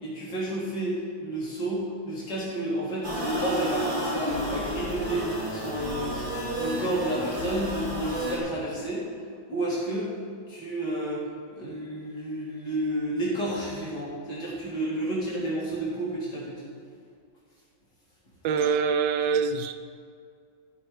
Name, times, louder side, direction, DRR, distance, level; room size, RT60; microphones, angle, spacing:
voice 1, 0.0-6.3 6.6-9.0 9.5-10.1 10.5-11.2 11.5-16.7, right 1 dB, 60° left, -8 dB, 2.8 m, -31 dB
sound 1, 3.0-8.4, equal, 25° right, 2.6 m, -31 dB
voice 2, 18.4-19.7, right 6 dB, 70° right, 8 dB, 1.2 m, -24 dB
13.5 x 5.4 x 4.9 m, 2.2 s
omnidirectional pair, 2.1 m